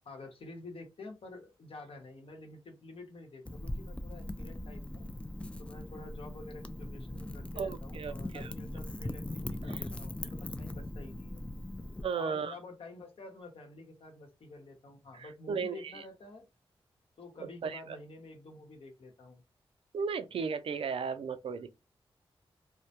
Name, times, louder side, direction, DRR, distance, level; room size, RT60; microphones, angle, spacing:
voice 1, 0.0-5.1 5.6-11.4 12.2-16.5 17.2-19.4, left 2 dB, 70° left, 0.9 m, -49 dB
Wind / Fire, 3.4-12.0, left 1 dB, 10° left, 0.3 m, -40 dB
voice 2, 7.6-8.5 9.7-9.8 12.0-12.5 15.1-16.0 17.6-17.8 19.9-21.8, right 6 dB, 70° right, 0.4 m, -35 dB
2.1 x 2.1 x 2.8 m
cardioid pair, 65°, 10 cm